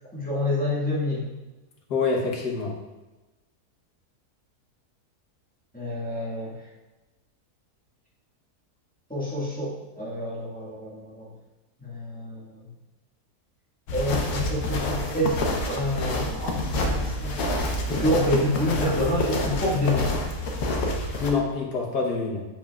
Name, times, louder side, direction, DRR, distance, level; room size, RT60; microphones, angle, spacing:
voice 1, 0.1-1.3 5.7-6.6 9.1-11.3 11.8-12.6 13.9-15.4 15.6-17.6 17.9-20.2, left 1 dB, 5° left, -8 dB, 1.6 m, -28 dB
voice 2, 1.9-2.8 21.2-22.5, left 4 dB, 90° left, -2 dB, 1.7 m, -26 dB
sound 1, 13.9-21.3, left 1 dB, 75° left, 1.4 m, -28 dB
7.7 x 6.4 x 2.4 m, 1.1 s
omnidirectional pair, 1.7 m